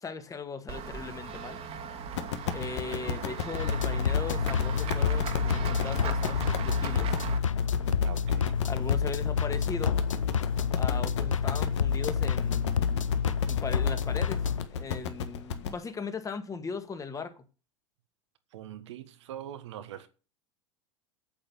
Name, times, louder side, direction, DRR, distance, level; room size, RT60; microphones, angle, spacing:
voice 1, 0.0-1.6 2.5-7.2 8.7-10.0 10.7-13.1 13.5-14.4 14.7-17.4, left 5 dB, 20° left, 2.0 m, -38 dB
Run / Walk footsteps / Bell, 0.7-7.4, right 6 dB, 40° right, 2.0 m, -37 dB
sound 1, 2.1-15.7, left 8 dB, 65° left, 1.6 m, -34 dB
sound 2, 3.6-14.7, left 6 dB, 85° left, 0.6 m, -28 dB
voice 2, 7.8-8.6 18.5-20.1, right 11 dB, 65° right, 1.5 m, -43 dB
8.8 x 8.7 x 7.1 m
figure-of-eight pair, 80°, 16 cm